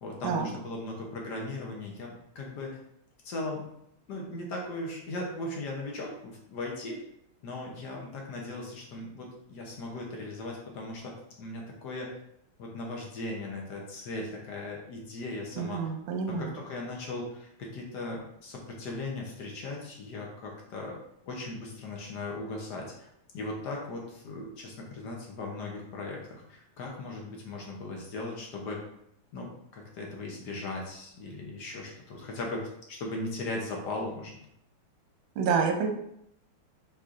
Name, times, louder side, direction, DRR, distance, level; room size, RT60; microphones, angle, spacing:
voice 1, 0.0-2.8 3.2-3.6 4.1-7.0 7.4-12.1 12.6-15.9 16.3-21.0 21.3-23.1 23.3-28.8 29.3-32.6 32.9-34.4, left 2 dB, 60° left, -1 dB, 1.2 m, -38 dB
voice 2, 15.6-16.5 35.4-35.9, right 5 dB, 70° right, 3 dB, 1.4 m, -28 dB
4.8 x 4.2 x 2.5 m, 0.75 s
omnidirectional pair, 2.4 m